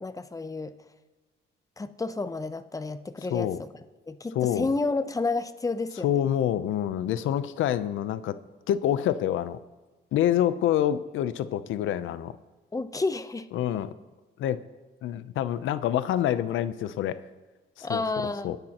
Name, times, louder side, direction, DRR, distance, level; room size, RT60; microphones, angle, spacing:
voice 1, 0.0-0.8 1.8-3.5 4.1-6.2 12.7-13.5 17.8-18.6, left 3 dB, 15° left, 11 dB, 0.7 m, -30 dB
voice 2, 3.3-3.6 4.3-4.7 6.0-8.4 8.7-9.6 10.1-12.4 13.5-13.9 14.4-14.6 15.0-17.2 17.8-18.6, left 11 dB, 80° left, 14 dB, 0.7 m, -27 dB
22.0 x 10.5 x 3.0 m, 1.2 s
cardioid pair, 90°, 20 cm